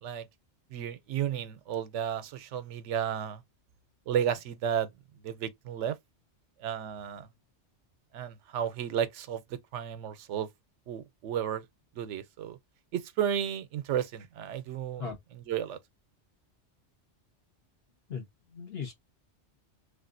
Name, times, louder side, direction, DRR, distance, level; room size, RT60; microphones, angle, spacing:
voice 1, 0.7-3.4 4.1-4.9 5.2-6.0 6.6-7.3 8.1-10.5 10.9-11.6 12.0-12.6 12.9-15.1 15.5-15.8, right 9 dB, 85° right, 0.9 m, -33 dB
voice 2, 18.1-18.9, left 6 dB, 60° left, 1.5 m, -38 dB
3.3 x 2.5 x 2.5 m
omnidirectional pair, 1.2 m